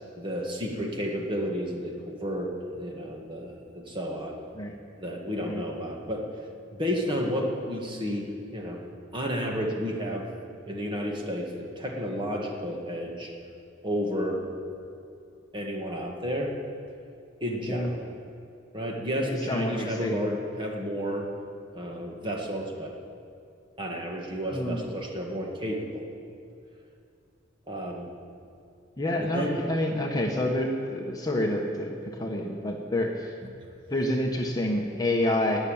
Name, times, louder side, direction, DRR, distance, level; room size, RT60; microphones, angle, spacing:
voice 1, 0.1-4.4 5.0-6.3 6.7-8.9 9.1-10.3 10.7-13.3 13.8-14.4 15.5-16.5 17.4-18.0 18.7-21.3 21.7-22.9 23.8-26.1 27.7-28.1 29.2-29.6, equal, 25° right, 0 dB, 1.9 m, -31 dB
voice 2, 19.2-20.2 24.5-24.8 29.0-33.3 33.9-35.6, left 1 dB, 20° left, 1 dB, 1.2 m, -28 dB
19.5 x 7.1 x 8.8 m, 2.5 s
head